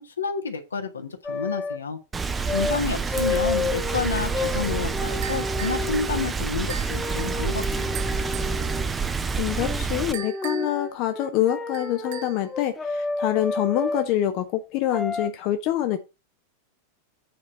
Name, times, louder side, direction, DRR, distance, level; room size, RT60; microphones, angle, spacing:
voice 1, 0.0-2.0 2.5-8.0, left 5 dB, 75° left, 1.5 m, -30 dB
sound 1, 1.2-1.8 2.4-2.8 3.1-6.3 6.9-8.9 9.5-9.9 10.1-14.1 14.9-15.3, left 3 dB, 10° left, 1.4 m, -30 dB
Rain, 2.1-10.1, right 5 dB, 15° right, 0.8 m, -28 dB
sound 2, 5.2-5.9 6.7-7.0 7.9-8.6 10.1-10.8 11.7-12.5, right 9 dB, 50° right, 1.0 m, -38 dB
voice 2, 9.4-16.0, left 12 dB, 40° left, 0.9 m, -25 dB
8.6 x 4.4 x 6.6 m
figure-of-eight pair, 90°, 0 cm